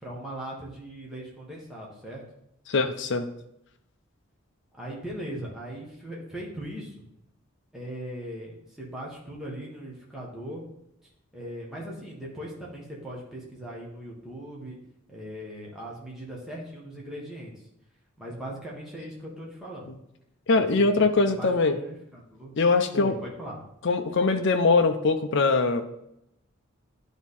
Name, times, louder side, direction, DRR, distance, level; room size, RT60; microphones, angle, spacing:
voice 1, 0.0-2.2 4.8-7.0 7.7-10.6 11.3-14.8 15.1-17.5 18.2-19.9 20.5-20.9 21.1-22.5 22.9-23.6, right 1 dB, ahead, -5 dB, 1.5 m, -39 dB
voice 2, 2.7-3.3 20.5-21.8 22.6-23.1 23.8-25.8, left 3 dB, 55° left, 5 dB, 0.6 m, -22 dB
10.5 x 3.5 x 4.2 m, 0.81 s
head